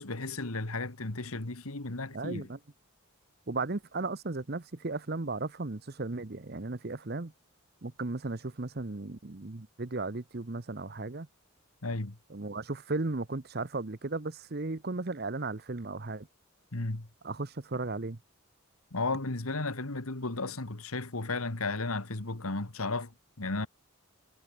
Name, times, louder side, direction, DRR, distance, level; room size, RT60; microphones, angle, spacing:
voice 1, 0.0-2.5 11.8-12.2 16.7-17.1 18.9-23.1 23.4-23.7, left 3 dB, 80° left, 1.9 m, -34 dB
voice 2, 2.1-2.6 3.5-7.3 7.8-11.3 12.3-16.3 17.2-18.2, right 3 dB, 45° right, 0.9 m, -35 dB
head